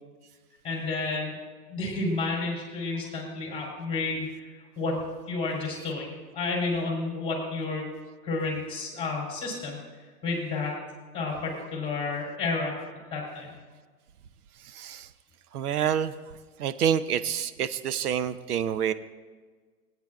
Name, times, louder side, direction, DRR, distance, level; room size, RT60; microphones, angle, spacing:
voice 1, 0.6-1.4 1.7-7.9 8.2-9.8 10.2-10.8 11.1-12.8 13.1-13.5, left 3 dB, 10° left, -2 dB, 3.6 m, -31 dB
voice 2, 14.7-15.1 15.5-16.1 16.6-18.9, right 9 dB, 70° right, 13 dB, 0.7 m, -27 dB
18.0 x 9.1 x 2.4 m, 1.4 s
hypercardioid pair, 120°, 48 cm